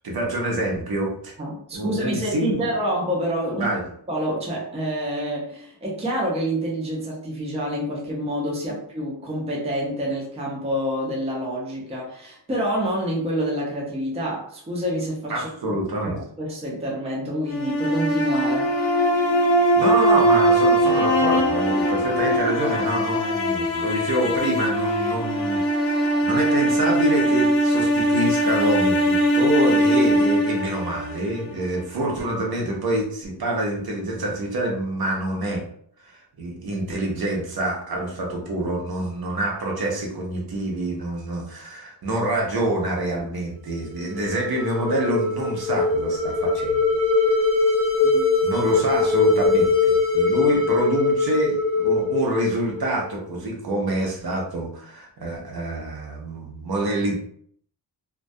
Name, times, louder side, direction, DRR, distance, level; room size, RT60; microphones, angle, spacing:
voice 1, 0.0-1.3 1.7-2.6 3.6-3.8 8.7-8.8 15.3-16.2 19.8-35.6 36.0-46.8 48.4-57.2, right 1 dB, 55° right, -1 dB, 0.7 m, -26 dB
voice 2, 1.4-3.7 4.1-15.8 16.1-18.7 48.0-48.3, equal, 15° right, -4 dB, 0.5 m, -27 dB
sound 1, 17.5-31.6, equal, 90° left, 0.6 m, -21 dB
sound 2, 43.9-53.1, left 3 dB, 35° left, 0.8 m, -21 dB
2.2 x 2.2 x 2.5 m, 0.63 s
wide cardioid pair, 155°, 45 cm